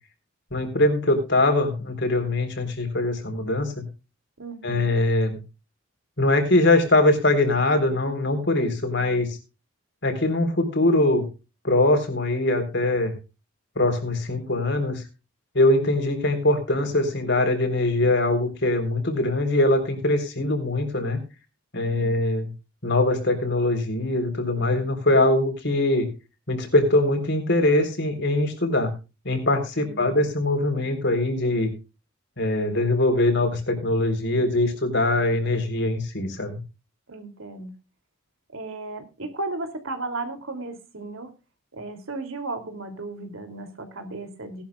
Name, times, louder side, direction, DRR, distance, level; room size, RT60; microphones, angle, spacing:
voice 1, 0.5-3.8 4.6-5.4 6.2-9.3 10.0-11.2 11.6-13.1 13.8-15.0 15.5-21.2 21.7-22.5 22.8-26.1 26.5-28.9 29.3-31.7 32.4-36.6, left 2 dB, 55° left, 5 dB, 3.8 m, -22 dB
voice 2, 4.4-4.9 21.7-22.2 29.7-30.2 37.1-37.7 38.5-41.3 41.7-44.6, right 2 dB, 75° right, 6 dB, 2.8 m, -35 dB
18.5 x 11.5 x 2.4 m, 0.30 s
head